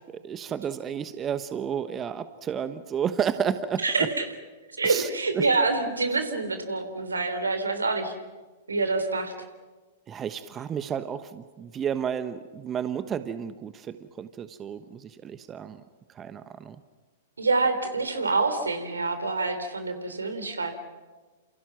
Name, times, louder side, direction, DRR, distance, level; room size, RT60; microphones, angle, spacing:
voice 1, 0.0-3.8 4.8-5.1 5.3-5.4 10.1-15.8 16.2-16.8, right 8 dB, 25° right, 12 dB, 1.1 m, -31 dB
voice 2, 3.8-4.2 4.8-8.1 8.7-9.3 17.4-20.8, right 3 dB, 80° right, 9 dB, 3.3 m, -26 dB
29.0 x 27.5 x 6.1 m, 1.3 s
figure-of-eight pair, 105°, 0 cm